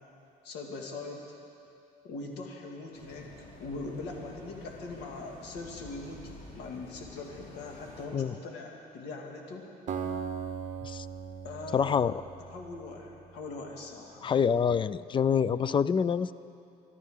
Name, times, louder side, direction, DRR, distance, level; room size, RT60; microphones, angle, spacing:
voice 1, 0.4-1.2 2.0-3.3 3.6-9.7 11.4-12.0 12.5-14.3, left 3 dB, 85° left, 0 dB, 2.1 m, -41 dB
sound 1, 2.9-8.1, left 2 dB, 55° left, 3.1 m, -50 dB
Acoustic guitar, 9.9-13.0, right 6 dB, 45° right, 1.0 m, -38 dB
voice 2, 11.7-12.1 14.2-16.3, left 7 dB, 30° left, 17 dB, 0.4 m, -26 dB
25.5 x 12.0 x 3.7 m, 2.6 s
cardioid pair, 110°, 17 cm